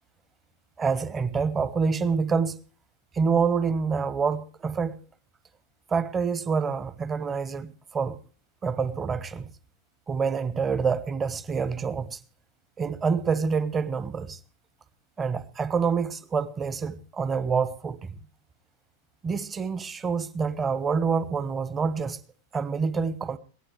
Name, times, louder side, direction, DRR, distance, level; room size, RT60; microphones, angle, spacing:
voice 1, 0.8-2.6 3.1-5.0 5.9-8.2 8.6-9.5 10.1-12.2 12.8-14.4 15.2-18.2 19.2-22.2 22.5-23.4, right 5 dB, 20° right, 1.1 m, -27 dB
22.0 x 17.0 x 3.1 m
figure-of-eight pair, 90°, 0 cm